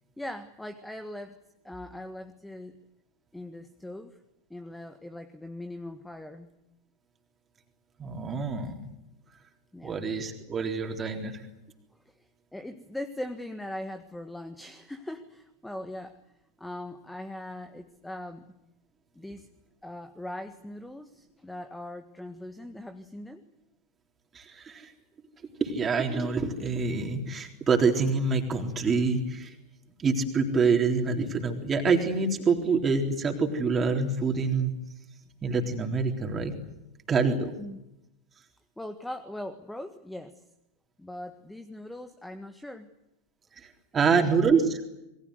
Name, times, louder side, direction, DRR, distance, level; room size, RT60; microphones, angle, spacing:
voice 1, 0.2-1.4 1.6-2.8 3.3-4.2 4.5-6.5 9.7-10.0 12.5-16.2 16.6-18.5 19.1-19.5 19.8-23.4 37.6-37.8 38.8-40.4 41.0-42.9 44.0-44.4, left 1 dB, 5° left, 9 dB, 1.6 m, -40 dB
voice 2, 8.0-8.7 9.8-11.5 24.3-24.9 25.6-29.6 30.0-34.7 35.4-36.6 37.1-37.5 43.6-44.8, right 4 dB, 20° right, 2 dB, 3.8 m, -26 dB
28.0 x 22.5 x 8.0 m, 0.89 s
figure-of-eight pair, 90°, 0 cm